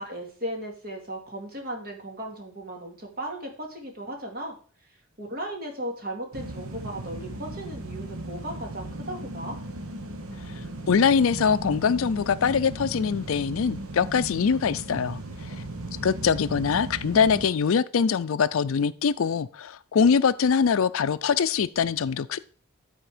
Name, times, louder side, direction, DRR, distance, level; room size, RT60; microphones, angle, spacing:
voice 1, 0.0-4.5 5.2-9.6, right 1 dB, 45° right, 2.4 m, -36 dB
sound 1, 6.3-17.5, right 2 dB, 75° right, 1.1 m, -37 dB
voice 2, 10.9-15.6 16.0-22.4, left 6 dB, 65° left, 0.4 m, -23 dB
11.5 x 4.4 x 5.0 m
head